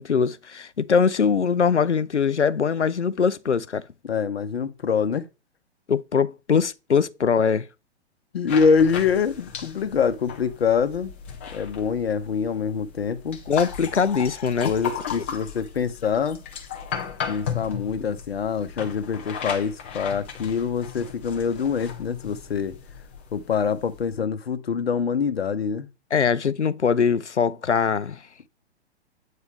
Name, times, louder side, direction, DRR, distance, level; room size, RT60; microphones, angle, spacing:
voice 1, 0.0-3.8 5.9-7.7 13.5-14.7 26.1-28.2, left 6 dB, 90° left, 0.5 m, -22 dB
voice 2, 4.0-5.3 8.3-11.1 11.5-13.4 14.6-16.4 17.3-22.8 23.3-25.9, left 6 dB, 60° left, 0.8 m, -25 dB
sound 1, 8.5-24.2, left 7 dB, 10° left, 0.3 m, -36 dB
8.2 x 4.0 x 3.4 m
figure-of-eight pair, 115°, 34 cm